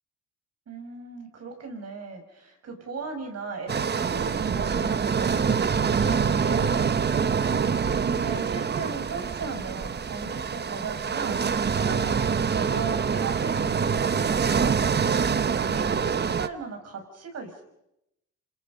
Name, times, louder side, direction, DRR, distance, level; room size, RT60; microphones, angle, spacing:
voice 1, 0.7-7.5 7.9-14.8 15.3-17.5, right 4 dB, 55° right, 4 dB, 5.9 m, -37 dB
sound 1, 3.7-16.5, right 6 dB, 35° right, 1.0 m, -25 dB
27.0 x 27.0 x 5.3 m, 0.84 s
cardioid pair, 90°, 30 cm